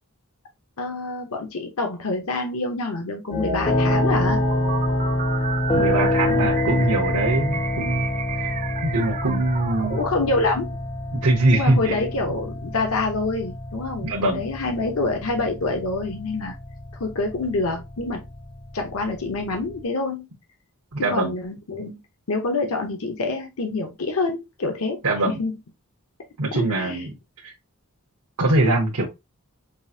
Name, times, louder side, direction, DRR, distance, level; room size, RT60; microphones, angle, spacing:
voice 1, 0.8-4.4 9.9-10.8 11.5-16.6 17.0-18.2 18.7-20.3 21.0-22.0 22.3-25.0 25.3-25.6 26.5-27.0, left 3 dB, 70° left, 0.9 m, -26 dB
sound 1, 3.3-19.8, left 1 dB, 25° left, 0.5 m, -27 dB
sound 2, 3.3-10.0, right 7 dB, 35° right, 0.3 m, -32 dB
voice 2, 5.7-8.1 8.3-8.6 8.8-10.0 11.1-12.0 14.0-14.5 20.9-21.3 25.0-25.4 26.4-27.5 28.4-29.1, right 2 dB, 80° right, 0.9 m, -22 dB
5.3 x 2.5 x 2.7 m
head